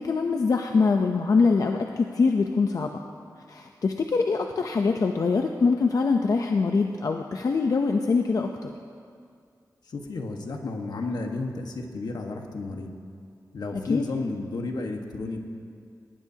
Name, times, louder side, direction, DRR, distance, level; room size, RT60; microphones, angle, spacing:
voice 1, 0.0-2.9 3.5-8.7 13.7-14.0, left 4 dB, 55° left, 3 dB, 0.7 m, -23 dB
voice 2, 9.9-12.9 13.5-15.4, left 3 dB, 75° left, 3 dB, 1.4 m, -32 dB
19.0 x 18.0 x 2.9 m, 2.3 s
wide cardioid pair, 120°, 7 cm